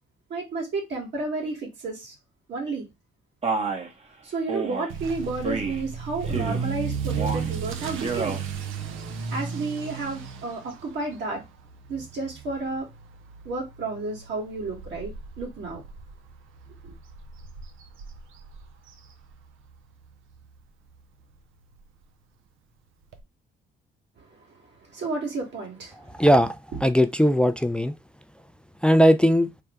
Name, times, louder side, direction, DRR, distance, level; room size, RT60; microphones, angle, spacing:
voice 1, 0.3-2.1 2.5-2.8 4.2-8.4 9.3-11.4 11.9-12.9 13.4-15.8 16.8-16.9 24.2-24.3 24.9-25.9, right 3 dB, 65° right, 2.0 m, -31 dB
Male speech man speaking, 3.4-3.9 4.5-4.9 5.4-5.8 6.3-6.7 7.1-7.5 7.9-8.4, right 4 dB, 30° right, 0.9 m, -29 dB
Motor vehicle (road) / Accelerating revving vroom, 4.9-19.8 20.0-20.4 20.9-21.0 21.4-21.5 21.7-21.8 23.1-23.2, right 6 dB, 85° right, 0.7 m, -35 dB
voice 2, 26.1-28.0 28.8-29.5, equal, 5° left, 0.3 m, -19 dB
3.4 x 2.3 x 4.4 m
cardioid pair, 90°, 20 cm